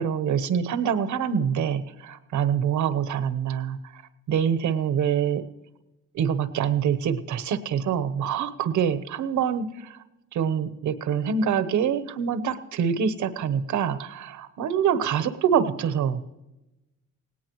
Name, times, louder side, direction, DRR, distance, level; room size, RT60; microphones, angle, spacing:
voice 1, 0.0-3.8 4.3-5.4 6.1-9.7 10.3-16.2, right 7 dB, 75° right, 12 dB, 1.1 m, -25 dB
18.0 x 18.0 x 3.2 m, 0.97 s
cardioid pair, 90°, 30 cm